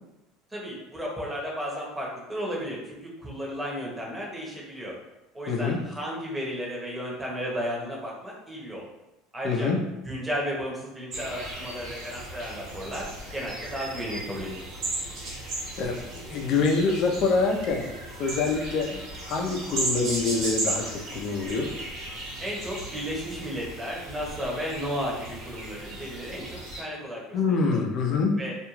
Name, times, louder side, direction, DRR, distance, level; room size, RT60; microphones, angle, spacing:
voice 1, 0.5-5.0 5.3-8.9 9.3-9.7 10.0-14.6 22.4-27.8 28.4-28.6, equal, 10° right, -3 dB, 0.9 m, -34 dB
voice 2, 5.5-5.8 9.4-9.8 15.3-15.5 15.8-17.9 18.2-21.7 27.3-28.4, left 4 dB, 55° left, 2 dB, 0.5 m, -26 dB
sound 1, 11.1-26.8, right 2 dB, 60° right, 1.1 m, -36 dB
2.4 x 2.3 x 3.1 m, 0.94 s
supercardioid pair, 105°, 0 cm